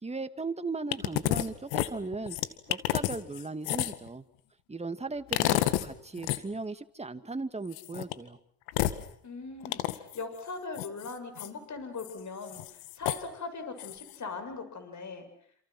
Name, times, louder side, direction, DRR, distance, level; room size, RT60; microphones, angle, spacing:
voice 1, 0.0-2.4 2.7-4.2 4.7-8.4, right 3 dB, 15° right, 9 dB, 2.3 m, -37 dB
sound 1, 0.9-1.5 1.7-4.1 5.3-5.9 6.2-6.4 7.7-8.1 8.7-9.0 9.6-10.2 10.8-11.5 12.0-12.1 12.5-13.2 13.8-14.2, left 16 dB, 75° left, 2.0 m, -30 dB
voice 2, 9.2-15.2, left 4 dB, 40° left, 8 dB, 7.5 m, -40 dB
29.0 x 28.0 x 6.2 m, 0.64 s
hypercardioid pair, 70°, 46 cm